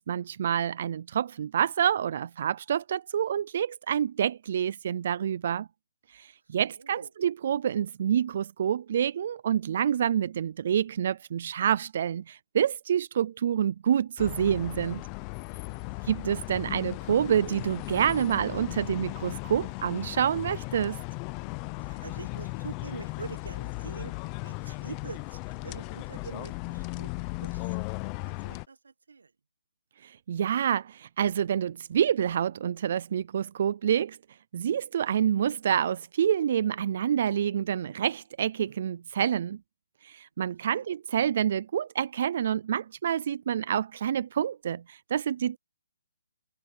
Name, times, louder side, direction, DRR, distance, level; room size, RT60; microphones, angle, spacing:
voice 1, 0.0-5.7 6.1-15.0 16.0-21.0 30.0-34.2 34.5-39.6 40.0-45.6, right 9 dB, 35° right, 0.3 m, -27 dB
voice 2, 6.5-7.1 15.8-16.0 21.8-24.1 24.4-27.9 28.2-29.3 40.7-40.8, right 4 dB, 75° right, 1.5 m, -45 dB
sound 1, 14.2-28.7, left 25 dB, 15° left, 0.6 m, -37 dB
hypercardioid pair, 175°, 0 cm